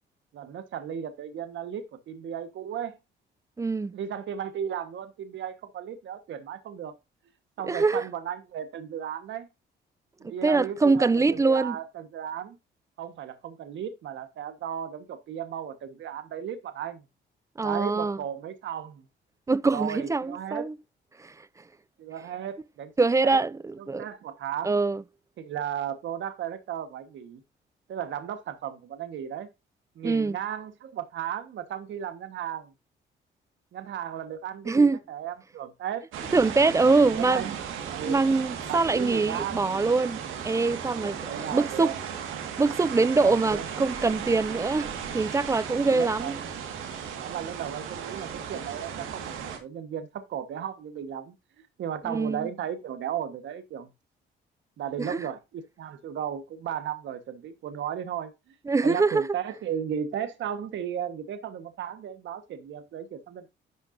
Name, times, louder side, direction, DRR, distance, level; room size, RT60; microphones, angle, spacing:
voice 1, 0.3-3.0 3.9-6.9 7.6-9.5 10.2-12.6 13.0-17.0 17.6-19.0 19.7-20.7 22.0-22.9 23.2-23.4 24.0-24.7 25.4-27.4 27.9-29.5 30.0-32.7 33.7-36.0 36.8-37.6 37.9-38.2 38.6-39.6 41.0-42.0 43.2-43.6 45.7-46.5 47.2-51.3 51.8-53.9 54.8-58.3 58.8-63.5, right 9 dB, 70° right, 1.3 m, -35 dB
voice 2, 3.6-3.9 7.7-8.0 10.2-11.8 17.6-18.2 19.5-20.8 21.2-21.3 23.0-24.1 24.6-25.0 30.0-30.4 34.7-35.0 36.3-37.5 38.0-41.9 42.6-46.4 52.0-52.5 55.0-55.2 58.7-59.3, right 3 dB, 15° right, 0.4 m, -24 dB
sound 1, 36.1-49.6, right 7 dB, 90° right, 1.7 m, -36 dB
10.5 x 5.7 x 2.6 m
cardioid pair, 90°, 20 cm